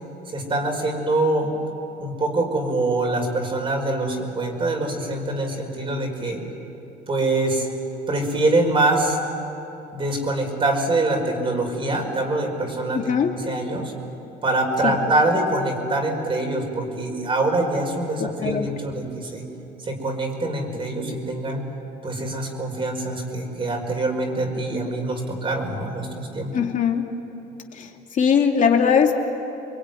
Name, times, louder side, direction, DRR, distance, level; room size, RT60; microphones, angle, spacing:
voice 1, 0.3-1.5 2.0-6.4 7.1-7.7 8.1-9.2 9.9-13.1 13.4-13.9 14.4-19.4 19.8-21.7 22.0-26.5, right 2 dB, 30° right, 2 dB, 5.5 m, -24 dB
voice 2, 12.9-13.3 14.8-14.9 18.2-18.7 26.5-27.1 27.7-29.2, left 7 dB, 50° left, 2 dB, 2.8 m, -20 dB
28.0 x 22.5 x 9.4 m, 2.9 s
cardioid pair, 110°, 17 cm